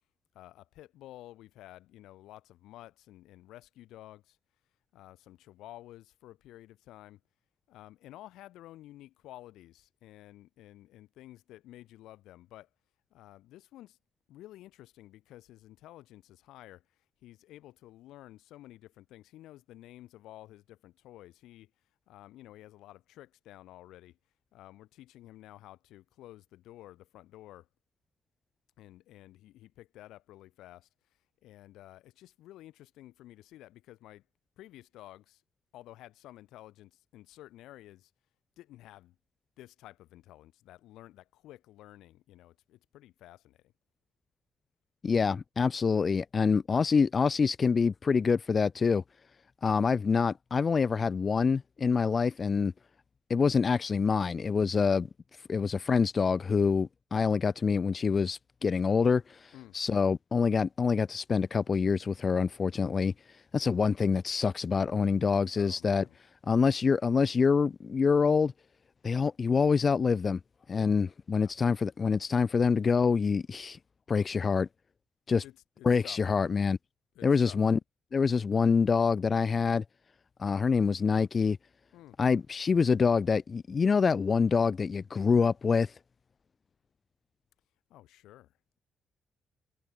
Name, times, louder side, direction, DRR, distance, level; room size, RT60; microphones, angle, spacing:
voice 1, 0.3-4.4 4.9-7.2 7.7-12.7 13.1-14.0 14.3-16.8 17.2-21.7 22.1-24.2 24.5-27.7 28.8-30.9 31.4-34.2 34.6-35.4 35.7-38.1 38.6-39.1 39.6-43.7 59.5-59.8 65.6-66.2 70.7-71.0 71.3-71.5 75.4-76.3 77.1-77.7 81.9-82.2 87.9-88.5, left 15 dB, 85° left, 4.6 m, -52 dB
voice 2, 45.0-49.0 49.6-52.7 53.3-55.1 55.5-63.1 63.5-66.0 66.5-68.5 69.0-70.4 70.7-73.8 74.1-74.7 75.3-75.4 75.8-76.8 77.2-77.8 78.1-79.8 80.4-81.6 82.2-85.9, left 5 dB, 40° left, 0.8 m, -26 dB
cardioid pair, 90°, 0 cm